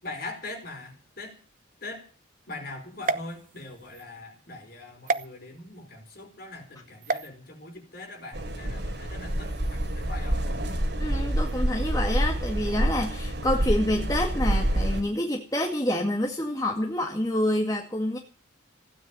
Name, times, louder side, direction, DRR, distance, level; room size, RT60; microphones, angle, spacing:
voice 1, 0.0-1.3 1.8-2.0 2.5-10.4, left 2 dB, 50° left, 3 dB, 4.8 m, -41 dB
sound 1, 3.0-4.0 5.1-5.2 7.0-7.3, right 3 dB, 45° right, 0.8 m, -30 dB
sound 2, 8.3-15.0, right 1 dB, 60° right, 3.8 m, -27 dB
voice 2, 11.0-18.2, left 1 dB, 20° left, 1 dB, 2.1 m, -27 dB
16.0 x 9.5 x 8.9 m, 0.40 s
head